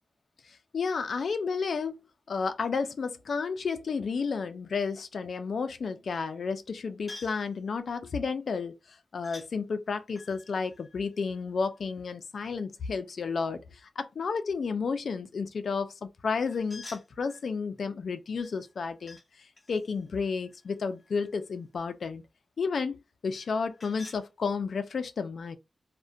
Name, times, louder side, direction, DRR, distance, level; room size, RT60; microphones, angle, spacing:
voice 1, 0.7-2.0 2.3-8.8 9.1-13.6 14.0-19.2 19.7-22.2 22.6-25.6, left 5 dB, 65° left, 0.3 m, -32 dB
sound 1, 7.1-7.5 9.2-9.5 10.1-11.9 16.5-17.5 18.4-19.3 19.6-21.5 23.3-24.2, left 2 dB, 25° left, 0.7 m, -50 dB
2.4 x 2.1 x 2.6 m
wide cardioid pair, 160°, 0 cm